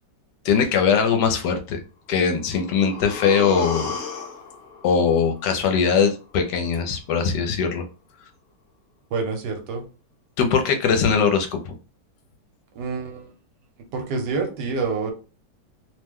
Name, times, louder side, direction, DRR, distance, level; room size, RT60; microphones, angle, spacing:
voice 1, 0.4-1.8 2.1-3.9 4.8-7.8 10.4-11.6, left 6 dB, 75° left, 5 dB, 1.1 m, -21 dB
sound 1, 2.2-6.2 6.6-6.7, left 5 dB, 55° left, 0.7 m, -35 dB
voice 2, 9.1-9.8 12.7-13.3 13.9-15.1, right 4 dB, 70° right, 3 dB, 1.3 m, -27 dB
3.0 x 2.1 x 3.5 m, 0.34 s
omnidirectional pair, 1.9 m